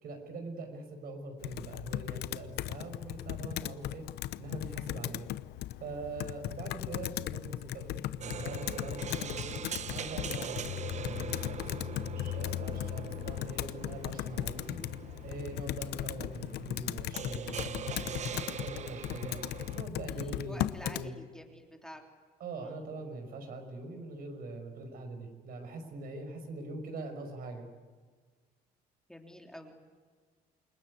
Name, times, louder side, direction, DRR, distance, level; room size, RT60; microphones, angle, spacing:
voice 1, 0.0-4.1 4.4-5.3 5.8-9.6 9.9-14.8 15.2-19.4 19.8-21.2 22.4-27.7, right 2 dB, 60° right, 6 dB, 5.5 m, -43 dB
Computer keyboard, 1.4-21.1, left 15 dB, 80° left, 0.8 m, -37 dB
sound 1, 8.2-19.8, right 8 dB, 45° right, 1.1 m, -43 dB
voice 2, 20.1-22.0 22.6-22.8 29.1-30.0, equal, 5° left, 2 dB, 3.2 m, -49 dB
28.5 x 20.0 x 9.6 m, 1.5 s
cardioid pair, 110°, 17 cm